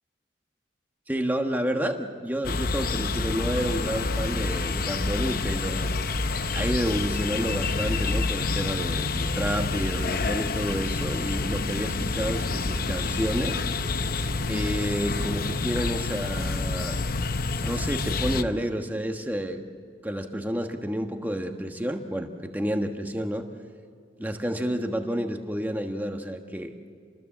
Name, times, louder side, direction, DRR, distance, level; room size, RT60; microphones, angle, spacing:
voice 1, 1.1-5.9 6.5-13.6 14.5-17.0 17.6-19.6 20.0-23.5 24.2-26.7, equal, 10° right, 4 dB, 1.3 m, -30 dB
sound 1, 2.4-18.4, left 3 dB, 50° left, 0.8 m, -28 dB
27.5 x 20.5 x 7.4 m, 2.3 s
head